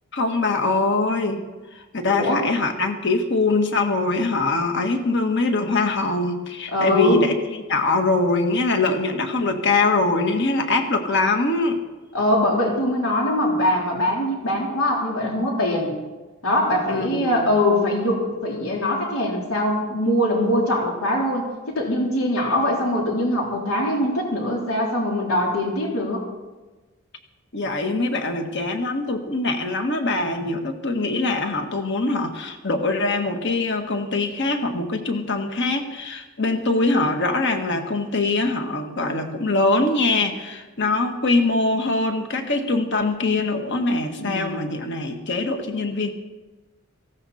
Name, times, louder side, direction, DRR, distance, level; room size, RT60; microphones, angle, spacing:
voice 1, 0.1-1.4 1.9-7.3 7.7-11.8 16.9-17.5 27.5-46.1, left 3 dB, 60° left, 5 dB, 1.7 m, -23 dB
voice 2, 2.1-2.4 6.7-7.2 12.1-15.9 16.4-26.3 44.2-44.6, left 1 dB, 90° left, -2 dB, 3.6 m, -22 dB
18.0 x 16.0 x 4.3 m, 1.2 s
head